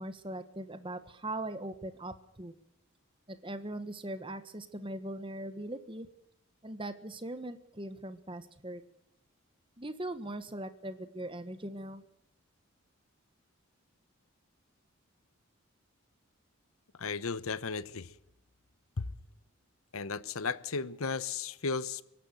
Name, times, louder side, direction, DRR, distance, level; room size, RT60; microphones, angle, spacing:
voice 1, 0.0-2.5 3.3-6.1 6.6-8.8 9.8-12.0, right 1 dB, 25° right, 1.4 m, -40 dB
voice 2, 17.0-18.1 19.0-19.1 19.9-22.0, left 4 dB, 75° left, 0.9 m, -35 dB
24.0 x 12.0 x 9.2 m
head